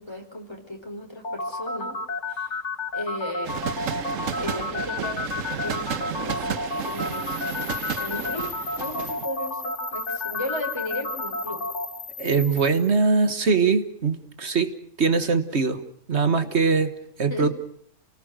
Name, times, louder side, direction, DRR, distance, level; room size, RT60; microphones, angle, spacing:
voice 1, 0.0-2.0 2.3-2.6 2.9-3.5 4.4-7.6 8.0-8.5 8.8-11.6 17.3-17.5, left 1 dB, 20° left, 2 dB, 4.5 m, -35 dB
sound 1, 1.2-11.9, left 3 dB, 65° left, 2.6 m, -31 dB
sound 2, 3.4-9.3, right 7 dB, 85° right, 1.5 m, -32 dB
sound 3, 6.7-13.0, left 6 dB, 80° left, 2.5 m, -40 dB
voice 2, 12.2-15.8 16.1-17.5, right 4 dB, 60° right, 10 dB, 1.7 m, -22 dB
28.5 x 19.5 x 6.5 m, 0.65 s
omnidirectional pair, 1.3 m